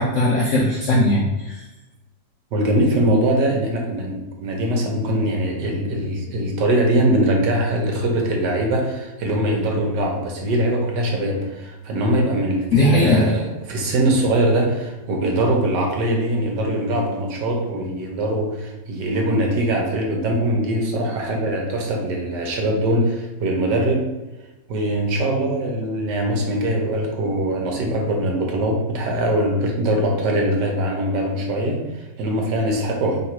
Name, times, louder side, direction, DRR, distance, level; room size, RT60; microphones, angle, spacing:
voice 1, 0.0-1.6 12.7-13.4, left 1 dB, 75° left, -3 dB, 0.7 m, -18 dB
voice 2, 2.5-24.1 24.7-33.2, right 1 dB, 70° right, 1 dB, 1.4 m, -22 dB
3.3 x 3.0 x 4.4 m, 1.1 s
omnidirectional pair, 2.0 m